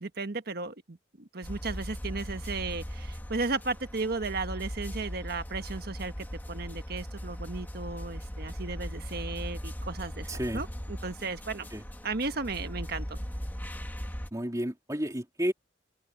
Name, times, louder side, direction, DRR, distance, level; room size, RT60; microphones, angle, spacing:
voice 1, 0.0-11.7 12.0-13.2, right 3 dB, 60° right, 1.5 m, -35 dB
sound 1, 1.4-14.3, equal, 10° left, 1.6 m, -39 dB
voice 2, 10.3-10.6 11.7-11.8 14.3-15.5, equal, 20° right, 3.3 m, -31 dB
head